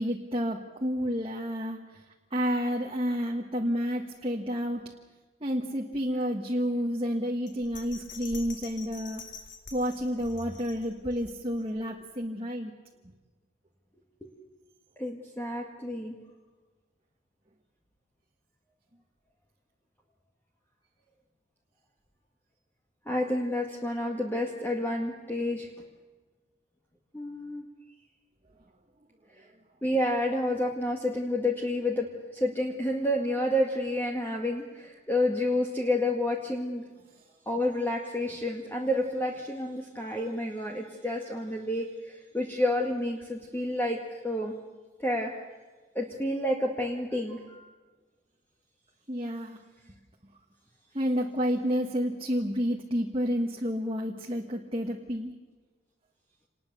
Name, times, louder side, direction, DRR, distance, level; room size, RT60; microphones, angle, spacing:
voice 1, 0.0-2.0 2.3-4.8 5.4-9.2 9.7-12.7 49.1-49.6 50.9-55.3, equal, 25° right, 0 dB, 1.6 m, -30 dB
Bell, 7.5-11.8 12.2-12.3, left 4 dB, 60° left, 3.3 m, -46 dB
voice 2, 15.0-16.2 23.1-25.7 27.1-27.7 29.4-29.5 29.8-36.8 37.5-44.0 44.2-44.5 45.0-45.3 46.0-47.7, left 1 dB, 10° left, 0 dB, 1.9 m, -29 dB
27.0 x 20.5 x 7.0 m, 1.4 s
head